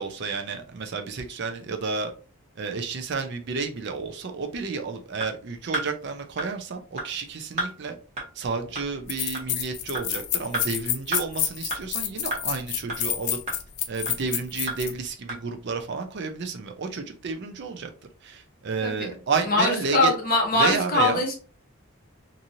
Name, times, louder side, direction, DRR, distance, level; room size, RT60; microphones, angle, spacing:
voice 1, 0.0-2.1 2.6-8.0 8.3-13.4 13.9-17.9 18.2-20.1 20.6-21.2, right 4 dB, 50° right, 5 dB, 0.4 m, -31 dB
sound 1, 5.2-5.3 5.7-5.9 6.4-6.5 7.0-7.1 7.6-7.7 8.2-8.3 8.8-8.9 9.3-9.5 9.9-10.1 10.5-10.6 11.1-11.2 11.7-11.8 12.3-12.4 12.9-13.0 13.5-13.6 14.1-14.2 14.7-14.8 15.3-15.4, right 2 dB, 30° right, 0.9 m, -29 dB
sound 2, 8.5-8.6 9.1-14.9, left 10 dB, 90° left, 0.4 m, -29 dB
voice 2, 18.8-19.2 19.4-21.3, left 2 dB, 40° left, 2 dB, 0.8 m, -22 dB
2.9 x 2.6 x 2.6 m, 0.37 s
head